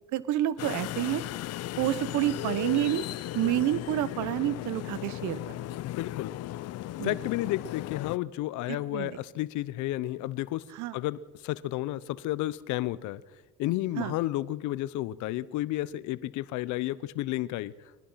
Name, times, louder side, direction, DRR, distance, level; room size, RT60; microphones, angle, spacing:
voice 1, 0.1-1.2 1.8-3.0 3.3-5.4 7.0-7.2 8.9-9.2 10.7-11.0 14.0-14.1, right 14 dB, 70° right, 17 dB, 1.2 m, -28 dB
sound 1, 0.6-8.2, left 15 dB, 55° left, 0.6 m, -36 dB
voice 2, 5.8-6.3 7.0-10.6 10.9-13.2 13.6-17.7, left 15 dB, 70° left, 19 dB, 0.9 m, -32 dB
23.5 x 19.5 x 5.8 m, 1.2 s
supercardioid pair, 90°, 31 cm